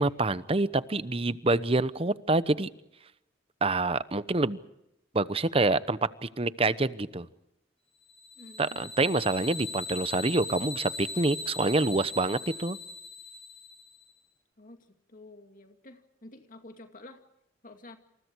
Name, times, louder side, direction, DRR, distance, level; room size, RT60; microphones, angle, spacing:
voice 1, 0.0-2.7 3.6-4.6 5.1-7.3 8.6-12.8, right 2 dB, 30° right, 15 dB, 0.9 m, -27 dB
sound 1, 8.1-14.0, left 4 dB, 30° left, 3.0 m, -40 dB
voice 2, 8.4-9.3 14.6-17.2 17.6-18.0, left 2 dB, 50° left, 6 dB, 2.3 m, -50 dB
28.5 x 28.0 x 4.7 m, 0.83 s
head